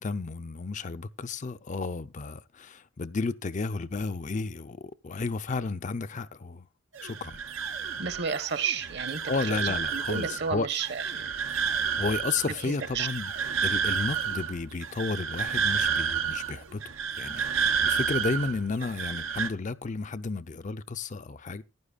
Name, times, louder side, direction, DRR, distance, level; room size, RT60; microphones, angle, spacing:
voice 1, 0.0-6.7 7.0-7.4 9.3-10.7 12.0-13.3 13.6-21.6, left 4 dB, 40° left, 0.5 m, -32 dB
sound 1, 6.9-19.5, right 6 dB, 80° right, 0.8 m, -30 dB
voice 2, 8.0-11.3 12.4-13.1, right 6 dB, 55° right, 1.2 m, -32 dB
15.0 x 11.0 x 2.4 m
head